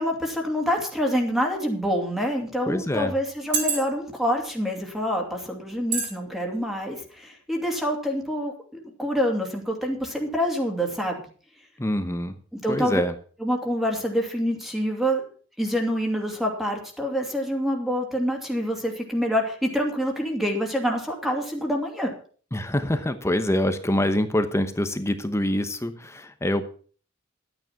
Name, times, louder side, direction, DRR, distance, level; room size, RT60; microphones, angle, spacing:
voice 1, 0.0-11.3 12.5-13.0 13.4-15.3 15.6-22.1, equal, ahead, 2 dB, 2.6 m, -26 dB
sound 1, 1.4-1.6 2.3-2.4 3.3-4.2 4.9-5.0 5.9-6.1 6.5-6.7, right 5 dB, 60° right, 6.0 m, -27 dB
voice 2, 2.7-3.1 11.8-12.3 12.7-13.1 22.5-26.6, left 1 dB, 15° left, 9 dB, 1.0 m, -25 dB
12.0 x 9.2 x 5.9 m, 0.43 s
head